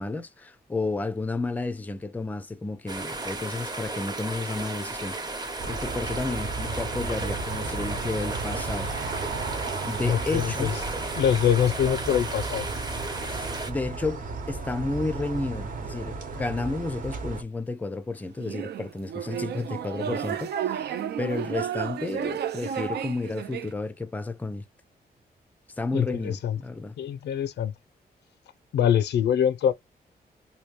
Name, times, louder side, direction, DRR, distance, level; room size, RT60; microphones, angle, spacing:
voice 1, 0.0-5.2 5.7-8.9 9.8-10.7 13.3-24.6 25.8-26.9, left 3 dB, 10° left, 0.4 m, -32 dB
sound 1, 2.9-13.7, right 2 dB, 25° right, 0.9 m, -34 dB
sound 2, 5.6-17.4, right 4 dB, 55° right, 1.1 m, -34 dB
voice 2, 10.0-10.7 11.2-12.7 25.9-26.6 27.0-27.7 28.7-29.7, left 9 dB, 90° left, 0.4 m, -24 dB
sound 3, 18.4-23.7, right 9 dB, 75° right, 0.4 m, -32 dB
3.0 x 2.7 x 3.1 m
wide cardioid pair, 130°, 17 cm